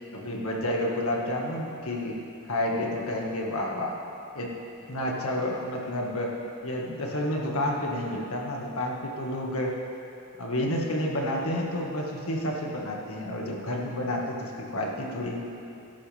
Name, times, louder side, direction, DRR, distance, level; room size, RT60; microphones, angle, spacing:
voice 1, 0.1-2.2 2.5-3.9 4.3-4.5 4.9-6.3 6.6-9.8 10.4-15.4, left 1 dB, 70° left, -1 dB, 1.9 m, -30 dB
18.5 x 11.5 x 3.5 m, 2.6 s
head